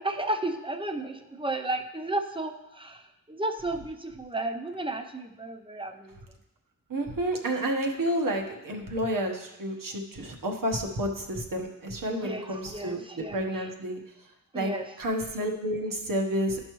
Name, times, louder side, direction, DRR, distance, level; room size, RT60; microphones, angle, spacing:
voice 1, 0.0-3.0 3.3-6.2 12.1-13.7 14.5-14.8, right 2 dB, 15° right, 5 dB, 0.6 m, -33 dB
voice 2, 6.9-14.0 14.5-14.7 15.0-16.6, right 1 dB, 70° right, 2 dB, 1.2 m, -30 dB
12.0 x 5.4 x 3.1 m, 0.92 s
wide cardioid pair, 115°, 34 cm